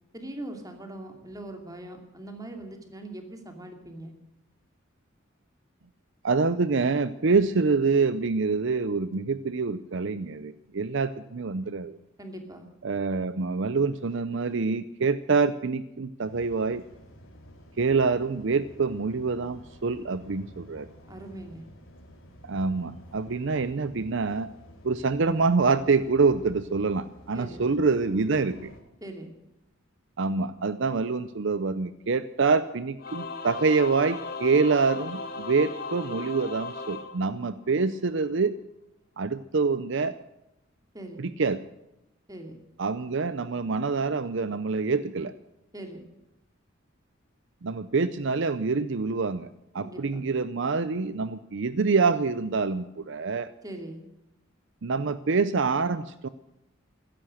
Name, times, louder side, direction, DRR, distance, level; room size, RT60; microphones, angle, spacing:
voice 1, 0.1-4.1 12.2-12.7 21.1-21.6 27.3-27.6 29.0-29.3 40.9-41.2 42.3-42.6 45.7-46.0 49.7-50.3 53.6-54.0, right 1 dB, 20° right, 4 dB, 2.6 m, -41 dB
voice 2, 6.2-12.0 12.8-16.8 17.8-20.9 22.4-24.5 24.8-28.7 30.2-38.5 39.2-40.2 41.2-41.6 42.8-45.3 47.6-53.5 54.8-56.3, right 4 dB, 60° right, 14 dB, 0.6 m, -26 dB
sound 1, 16.2-28.8, equal, 80° left, 4.0 m, -51 dB
Singing / Musical instrument, 33.0-37.8, left 4 dB, 45° left, 1.8 m, -37 dB
16.0 x 13.0 x 6.4 m, 0.90 s
head